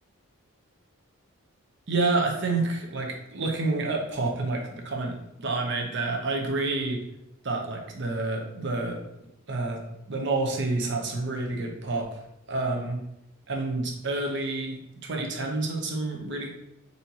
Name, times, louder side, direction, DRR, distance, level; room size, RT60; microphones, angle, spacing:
voice 1, 1.9-7.0 7.4-9.0 9.5-9.8 10.1-12.1 12.5-13.0 13.5-16.5, right 3 dB, 55° right, 1 dB, 0.8 m, -28 dB
4.2 x 4.1 x 2.9 m, 0.86 s
head